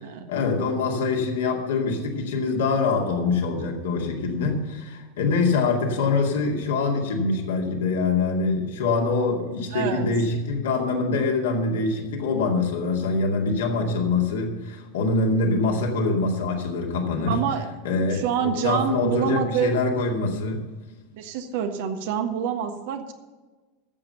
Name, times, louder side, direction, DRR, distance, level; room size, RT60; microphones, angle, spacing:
voice 1, 0.3-17.4 17.8-20.6, left 3 dB, 60° left, 1 dB, 2.3 m, -24 dB
voice 2, 9.7-10.1 17.3-17.6 18.1-19.7 21.1-23.1, right 8 dB, 55° right, 6 dB, 1.4 m, -26 dB
13.5 x 7.9 x 6.9 m, 1.3 s
figure-of-eight pair, 85°, 0 cm